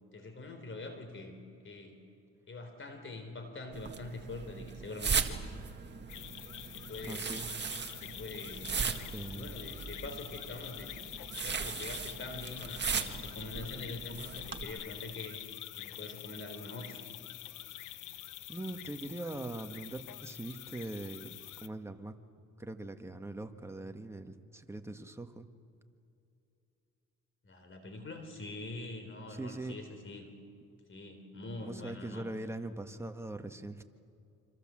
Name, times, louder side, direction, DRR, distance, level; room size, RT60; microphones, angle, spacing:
voice 1, 0.1-1.4 1.6-2.0 2.5-5.4 6.1-6.3 6.7-7.3 8.0-8.9 9.3-10.9 11.4-15.4 15.8-17.0 27.4-30.3 30.9-32.2, left 2 dB, 40° left, 6 dB, 3.9 m, -44 dB
sound 1, 3.7-14.6, right 6 dB, 35° right, 1.8 m, -38 dB
sound 2, 6.1-21.7, left 13 dB, 85° left, 0.9 m, -46 dB
voice 2, 7.1-7.5 8.8-9.6 18.5-22.1 22.6-25.5 29.3-29.8 31.6-33.8, right 2 dB, 10° right, 5 dB, 1.7 m, -42 dB
27.0 x 26.0 x 7.7 m, 2.7 s
cardioid pair, 90°, 30 cm